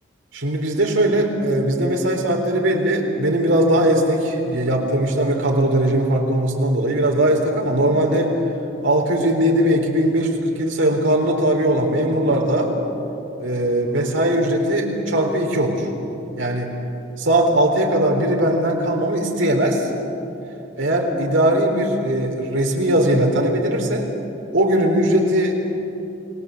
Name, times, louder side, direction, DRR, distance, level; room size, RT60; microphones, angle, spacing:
voice 1, 0.3-8.4 8.8-12.7 13.4-15.9 16.4-16.8 17.2-19.9 20.8-24.1 24.5-25.5, right 1 dB, 80° right, 1 dB, 4.1 m, -19 dB
29.5 x 19.5 x 8.0 m, 2.8 s
head